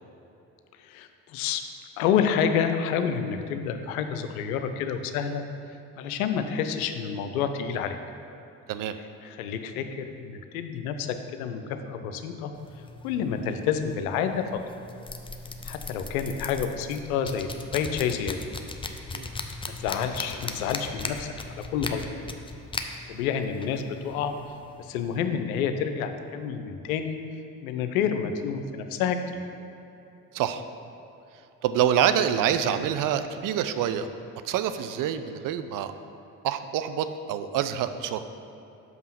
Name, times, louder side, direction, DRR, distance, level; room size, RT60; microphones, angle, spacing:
voice 1, 0.8-1.6 2.0-5.4 6.0-8.0 9.2-12.5 13.0-14.4 15.6-18.4 19.6-21.3 21.7-22.0 23.1-24.3 24.8-27.2 27.6-29.4, left 7 dB, 75° left, 8 dB, 0.7 m, -29 dB
sound 1, 12.5-25.2, left 3 dB, 10° left, 0.5 m, -38 dB
voice 2, 31.6-34.1 34.4-35.9 36.4-38.2, right 9 dB, 50° right, 10 dB, 0.6 m, -26 dB
6.1 x 5.4 x 5.8 m, 2.9 s
hypercardioid pair, 55°, 43 cm